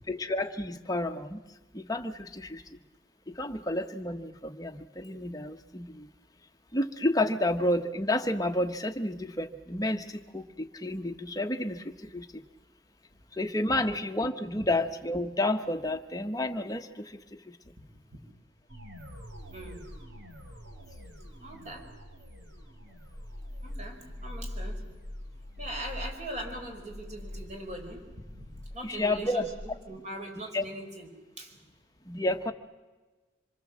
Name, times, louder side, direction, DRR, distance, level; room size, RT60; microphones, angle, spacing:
voice 1, 0.1-1.4 1.7-2.6 3.3-6.1 6.7-12.4 13.3-17.6 28.8-29.5 30.5-30.6 32.1-32.5, left 1 dB, 20° left, 6 dB, 1.1 m, -30 dB
sound 1, 18.7-29.8, left 1 dB, 70° right, 4.4 m, -43 dB
voice 2, 19.5-19.8 21.4-21.9 23.6-24.9 25.6-31.1 31.4-31.6, right 1 dB, 35° right, 3 dB, 5.1 m, -41 dB
26.5 x 24.0 x 7.5 m, 1.3 s
head